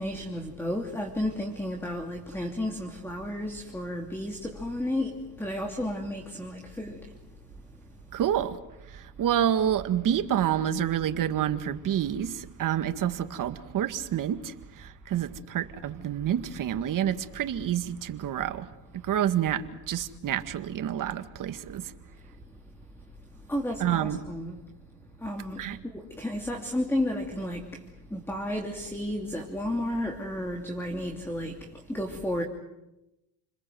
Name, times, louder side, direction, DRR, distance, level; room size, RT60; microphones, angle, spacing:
voice 1, 0.0-7.1 23.5-24.6 25.2-27.8 28.1-32.4, left 1 dB, 5° left, 3.0 m, -32 dB
voice 2, 8.1-8.6 8.9-18.7 18.9-21.9 23.8-24.2 25.6-25.8, right 10 dB, 45° right, 2.0 m, -28 dB
29.5 x 21.5 x 7.9 m
supercardioid pair, 105°, 43 cm